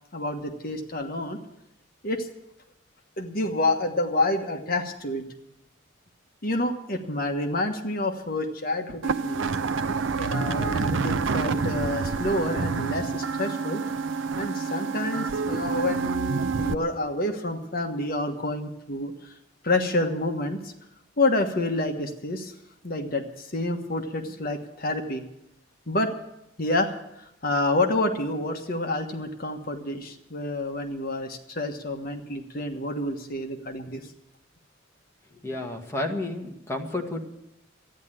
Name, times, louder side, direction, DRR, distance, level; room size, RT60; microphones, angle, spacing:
voice 1, 0.1-1.4 2.0-2.3 3.2-5.2 6.4-9.4 10.2-13.8 14.4-19.3 19.6-20.7 21.2-22.5 22.8-25.2 25.9-26.1 26.6-34.0, left 2 dB, 50° left, 5 dB, 1.4 m, -28 dB
sound 1, 9.0-16.7, right 4 dB, 75° right, 0.6 m, -27 dB
voice 2, 35.4-37.2, left 2 dB, 15° left, 0 dB, 1.8 m, -31 dB
13.5 x 9.7 x 9.0 m, 0.83 s
head